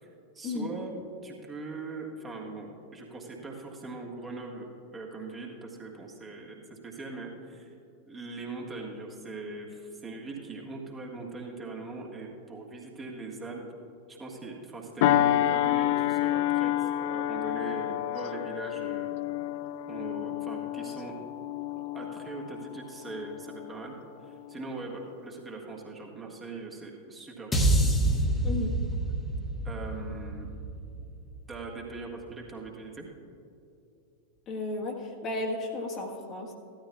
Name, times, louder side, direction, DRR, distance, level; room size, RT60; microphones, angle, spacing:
voice 1, 0.3-0.9 1.2-4.7 4.9-7.7 8.1-13.6 14.1-19.3 19.9-21.1 21.7-23.9 24.2-27.6 29.6-30.5 31.5-33.1, right 3 dB, 20° right, -1 dB, 1.6 m, -41 dB
sound 1, 15.0-23.9 24.3-24.5, left 13 dB, 50° left, 0.3 m, -29 dB
sound 2, 27.5-31.9, right 1 dB, 10° left, 1.2 m, -28 dB
voice 2, 28.4-28.8 34.5-36.5, left 2 dB, 30° left, 0 dB, 1.4 m, -34 dB
15.5 x 12.5 x 2.3 m, 2.7 s
figure-of-eight pair, 90°, 0 cm